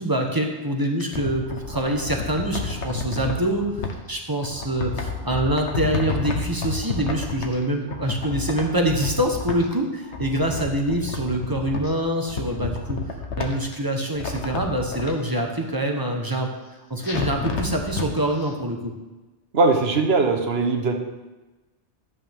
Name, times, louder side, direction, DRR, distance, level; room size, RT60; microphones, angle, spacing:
voice 1, 0.0-13.0 13.4-16.5 16.9-18.9, right 1 dB, 20° right, 2 dB, 1.1 m, -25 dB
sound 1, 0.8-3.9 4.4-7.6 7.9-9.7 10.0-11.9 12.3-13.8 14.1-15.1 17.0-18.1 18.4-18.5, left 4 dB, 80° left, 1.3 m, -30 dB
voice 2, 19.5-20.9, right 3 dB, 65° right, 4 dB, 1.3 m, -20 dB
12.0 x 8.4 x 3.6 m, 1.1 s
omnidirectional pair, 1.2 m